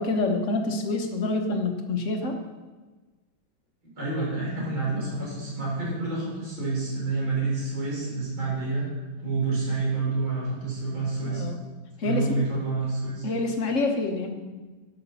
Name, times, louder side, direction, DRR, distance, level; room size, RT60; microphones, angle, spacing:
voice 1, 0.0-2.4 11.2-11.6 12.0-12.4 13.2-14.3, left 2 dB, 45° left, 4 dB, 1.3 m, -27 dB
voice 2, 4.0-11.5 12.0-13.2, right 3 dB, 80° right, -5 dB, 4.8 m, -28 dB
10.5 x 6.0 x 6.7 m, 1.3 s
omnidirectional pair, 2.2 m